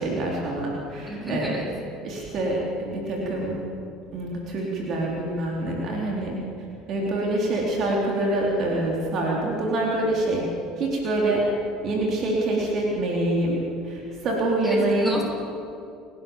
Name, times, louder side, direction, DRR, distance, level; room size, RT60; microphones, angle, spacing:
voice 1, 0.0-1.5 2.0-3.6 4.1-6.4 6.9-10.4 10.8-11.5 11.8-15.2, right 2 dB, 50° right, -2 dB, 4.0 m, -25 dB
voice 2, 1.1-1.7 14.6-15.2, equal, 5° right, 0 dB, 6.3 m, -31 dB
30.0 x 12.0 x 7.3 m, 2.6 s
hypercardioid pair, 70°, 0 cm